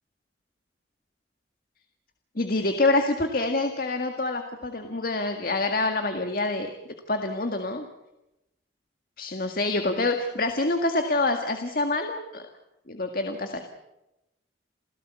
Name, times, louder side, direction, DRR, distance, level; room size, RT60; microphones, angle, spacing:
voice 1, 2.4-6.7 7.1-7.9 9.2-12.4 12.9-13.7, left 2 dB, 55° left, 6 dB, 1.9 m, -26 dB
29.0 x 16.5 x 8.3 m, 0.91 s
head